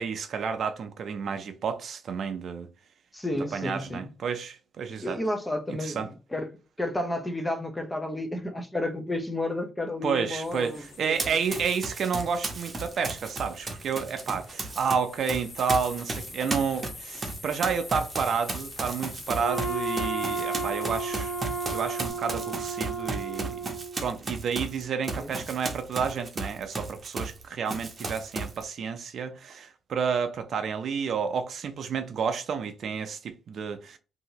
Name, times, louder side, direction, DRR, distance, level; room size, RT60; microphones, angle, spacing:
voice 1, 0.0-2.7 3.5-5.2 5.7-6.1 10.0-21.3 21.7-23.6 24.0-34.0, right 6 dB, 60° right, 0.5 m, -30 dB
voice 2, 3.1-4.1 5.0-6.5 6.8-11.4 25.1-25.3, left 1 dB, 10° left, 0.6 m, -32 dB
sound 1, 10.4-22.1, left 3 dB, 40° left, 0.9 m, -45 dB
Run, 11.2-14.9 15.3-27.4 27.7-28.6, right 3 dB, 30° right, 0.8 m, -35 dB
Wind instrument woodwind instrument, 19.4-24.1, right 3 dB, 80° left, 0.8 m, -33 dB
2.8 x 2.7 x 2.8 m
cardioid pair, 90°, 0 cm